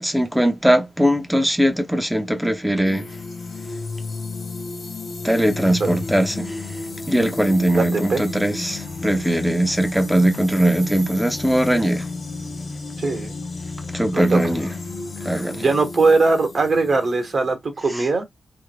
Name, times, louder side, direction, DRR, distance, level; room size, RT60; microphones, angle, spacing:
voice 1, 0.0-3.1 5.2-6.6 7.1-12.1 13.9-14.7 15.2-15.6, right 1 dB, 5° right, 0.6 m, -20 dB
sound 1, 2.8-17.5, left 3 dB, 55° left, 0.9 m, -33 dB
voice 2, 7.7-8.2 13.0-13.3 14.1-14.4 15.3-18.2, right 3 dB, 50° right, 1.1 m, -20 dB
3.4 x 3.1 x 2.2 m
wide cardioid pair, 160°, 0 cm